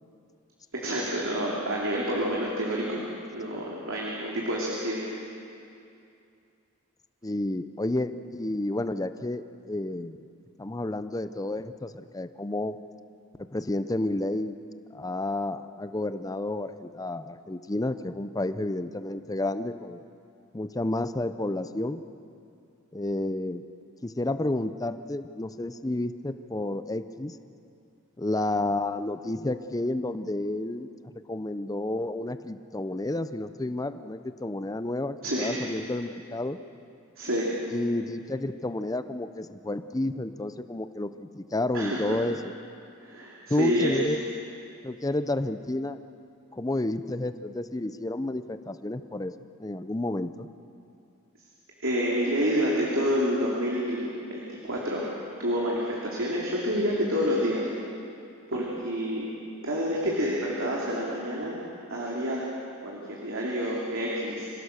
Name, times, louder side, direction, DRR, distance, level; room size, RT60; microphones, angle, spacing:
voice 1, 0.7-3.0 3.3-5.0 35.2-35.6 37.2-37.6 41.7-42.2 43.0-44.0 51.8-55.1 55.4-57.7 58.5-59.3 59.6-61.6 61.9-62.4 62.8-64.5, equal, 75° right, -4 dB, 3.0 m, -28 dB
voice 2, 7.2-10.2 10.6-12.8 13.5-14.6 14.9-20.0 20.5-22.0 22.9-23.6 24.0-27.4 28.2-30.9 31.3-36.6 37.7-42.4 43.5-44.2 44.8-46.0 46.5-49.3 49.6-50.5, left 2 dB, 15° left, 11 dB, 0.6 m, -30 dB
26.0 x 16.5 x 6.6 m, 2.5 s
head